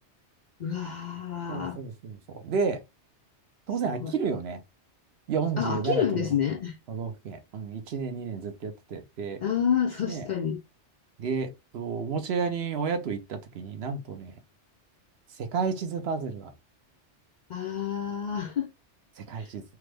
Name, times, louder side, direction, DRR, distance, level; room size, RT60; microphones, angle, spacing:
voice 1, 0.6-1.8 4.0-4.1 5.6-6.8 9.4-10.6 17.5-18.7 19.4-19.5, left 8 dB, 60° left, 0.5 m, -29 dB
voice 2, 1.5-2.8 3.7-4.6 5.3-6.3 6.9-9.4 10.1-10.3 11.2-14.3 15.4-16.5 19.2-19.6, right 5 dB, 65° right, 0.9 m, -31 dB
3.4 x 2.0 x 3.3 m
omnidirectional pair, 1.2 m